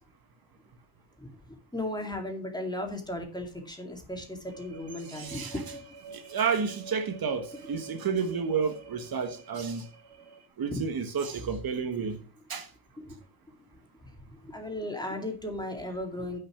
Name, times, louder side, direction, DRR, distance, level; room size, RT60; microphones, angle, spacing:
voice 1, 1.2-5.8 10.7-10.8 13.0-13.2 14.3-16.4, left 1 dB, 10° left, 2.3 m, -36 dB
sound 1, 4.5-10.5, right 5 dB, 80° right, 2.0 m, -49 dB
voice 2, 5.0-5.5 6.1-9.9 10.6-12.2 12.5-12.7, right 6 dB, 60° right, 1.5 m, -31 dB
9.6 x 5.8 x 5.9 m
wide cardioid pair, 140°, 40 cm